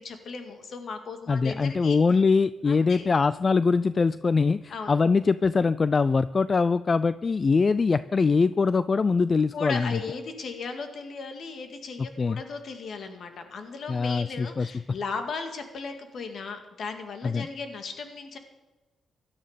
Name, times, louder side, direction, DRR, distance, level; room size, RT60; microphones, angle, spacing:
voice 1, 0.0-2.0 2.7-3.1 4.7-5.0 9.5-18.4, left 4 dB, 60° left, 6 dB, 2.1 m, -36 dB
voice 2, 1.3-10.0 12.0-12.4 13.9-15.0 17.2-17.5, left 4 dB, 35° left, 16 dB, 0.4 m, -23 dB
17.0 x 12.0 x 5.1 m, 1.1 s
cardioid pair, 85°, 0 cm